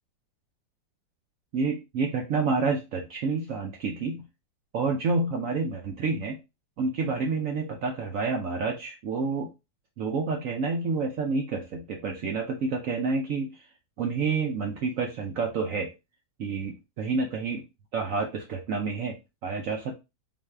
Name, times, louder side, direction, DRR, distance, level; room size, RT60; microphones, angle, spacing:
voice 1, 1.5-4.2 4.7-6.4 6.8-9.5 10.0-13.6 14.0-15.9 16.4-17.6 17.9-19.2 19.4-19.9, right 4 dB, 65° right, 2 dB, 0.8 m, -29 dB
3.9 x 2.6 x 3.3 m, 0.25 s
omnidirectional pair, 2.0 m